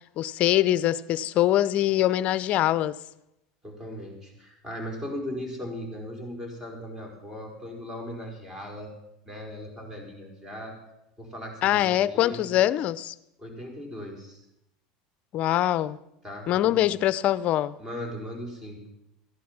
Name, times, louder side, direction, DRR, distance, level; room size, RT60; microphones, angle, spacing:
voice 1, 0.2-3.0 11.6-13.1 15.3-16.0 16.5-17.7, left 13 dB, 50° left, 0.6 m, -23 dB
voice 2, 3.6-8.9 9.2-10.8 11.2-12.4 13.4-14.4 16.2-16.9 17.8-18.9, equal, 15° right, 4.7 m, -38 dB
15.0 x 11.0 x 6.0 m
supercardioid pair, 110°, 3 cm